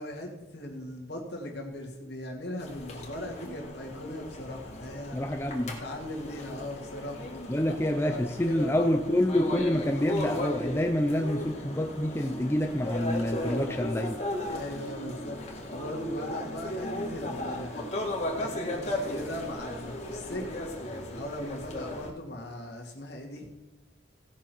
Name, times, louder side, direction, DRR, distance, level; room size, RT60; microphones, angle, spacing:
voice 1, 0.0-5.2 5.8-7.3 7.7-7.8 8.1-8.9 9.2-9.4 14.5-15.4 15.7-17.9 18.4-20.6 21.1-23.5, left 1 dB, 55° left, 0 dB, 2.0 m, -39 dB
sound 1, 2.6-22.1, left 1 dB, 35° left, 1.8 m, -36 dB
voice 2, 5.1-5.8 7.5-14.2, left 1 dB, 10° left, 3 dB, 0.5 m, -27 dB
16.5 x 6.3 x 4.5 m, 1.0 s
head